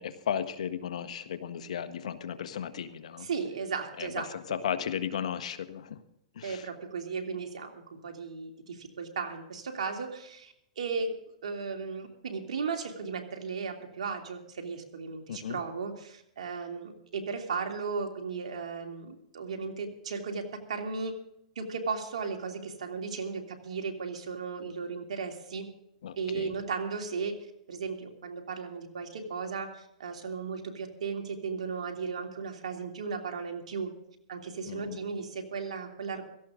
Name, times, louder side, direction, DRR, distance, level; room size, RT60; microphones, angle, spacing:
voice 1, 0.0-3.3 4.0-4.1 4.3-6.0 6.3-6.6 15.3-15.6 26.0-26.5 34.7-35.0, left 8 dB, 75° left, 10 dB, 1.3 m, -35 dB
voice 2, 3.2-4.6 6.4-11.1 11.4-21.1 21.5-25.7 26.2-27.4 27.7-29.7 30.0-33.9 34.3-36.3, right 5 dB, 80° right, 3 dB, 3.0 m, -36 dB
17.0 x 15.0 x 3.8 m, 0.76 s
hypercardioid pair, 135°, 4 cm